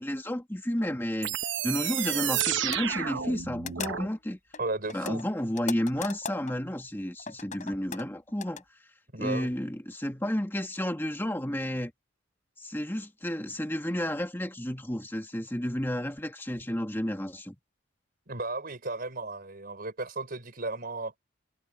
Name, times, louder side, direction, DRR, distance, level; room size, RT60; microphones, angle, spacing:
voice 1, 0.0-4.4 4.9-8.6 9.2-11.9 12.6-17.6, equal, 10° left, 1.8 m, -32 dB
sound 1, 0.8-1.0 1.7-1.8 2.3-2.5 2.7-2.8 3.6-4.2 4.5-6.5 7.2-8.6, left 6 dB, 40° left, 5.3 m, -39 dB
sound 2, 1.2-4.1, right 10 dB, 65° right, 1.0 m, -30 dB
voice 2, 4.6-5.2 9.1-9.5 18.3-21.1, right 2 dB, 45° right, 4.1 m, -34 dB
head